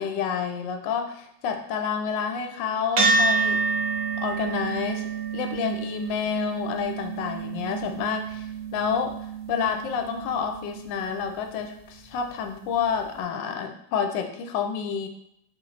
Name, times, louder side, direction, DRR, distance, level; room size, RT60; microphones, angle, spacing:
voice 1, 0.0-3.6 4.2-9.2 9.5-15.1, left 6 dB, 75° left, 5 dB, 1.2 m, -29 dB
sound 1, 3.0-11.6, right 4 dB, 70° right, 1.9 m, -28 dB
4.3 x 3.1 x 3.9 m, 0.75 s
omnidirectional pair, 2.1 m